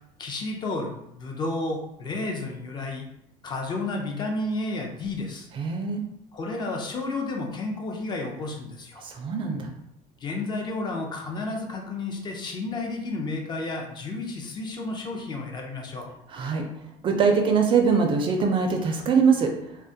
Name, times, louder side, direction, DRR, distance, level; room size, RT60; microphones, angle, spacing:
voice 1, 0.2-3.1 3.4-5.5 6.3-9.0 10.2-16.1, left 2 dB, 35° left, 1 dB, 0.5 m, -31 dB
voice 2, 5.6-6.1 9.0-9.7 16.3-16.6 17.0-19.5, right 5 dB, 40° right, 4 dB, 0.4 m, -22 dB
2.2 x 2.1 x 2.6 m, 0.79 s
cardioid pair, 125°, 14 cm